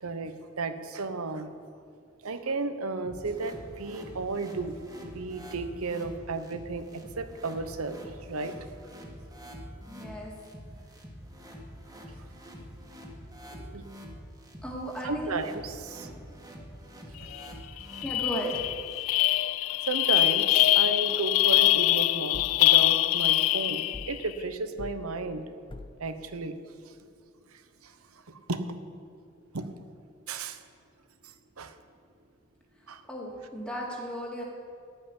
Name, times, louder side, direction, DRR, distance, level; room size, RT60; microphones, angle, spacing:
voice 1, 0.0-1.5 2.2-8.5 13.7-13.8 15.0-16.1 17.2-17.3 19.9-25.5 26.0-26.6 26.8-26.9 27.5-27.9 28.3-28.8 29.5-29.7 30.3-30.6 31.6-31.7 32.9-33.0, right 3 dB, 85° right, 10 dB, 0.9 m, -34 dB
sound 1, 3.0-19.0, equal, 15° right, 1.8 m, -46 dB
voice 2, 9.9-10.3 13.5-13.7 14.6-15.3 18.0-18.7 33.1-34.4, equal, 5° left, -2 dB, 2.1 m, -35 dB
sound 2, 17.3-17.5 17.8-24.2, left 17 dB, 70° left, 0.3 m, -24 dB
sound 3, 22.3-22.7 23.9-24.3 24.8-25.0 25.7-26.0, left 2 dB, 25° left, 0.5 m, -42 dB
15.5 x 5.6 x 9.8 m, 2.3 s
head